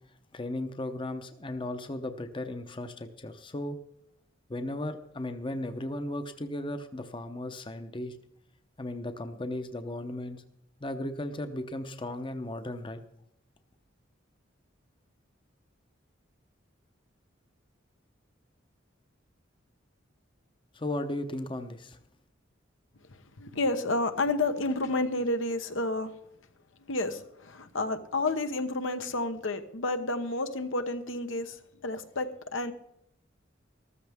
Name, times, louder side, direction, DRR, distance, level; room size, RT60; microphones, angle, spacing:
voice 1, 0.3-3.8 4.5-8.2 8.8-10.4 10.8-13.0 20.7-22.0, left 1 dB, 25° left, 8 dB, 0.8 m, -36 dB
voice 2, 23.1-26.1 26.8-32.7, left 2 dB, 80° left, 8 dB, 1.0 m, -30 dB
14.0 x 14.0 x 3.6 m, 0.77 s
head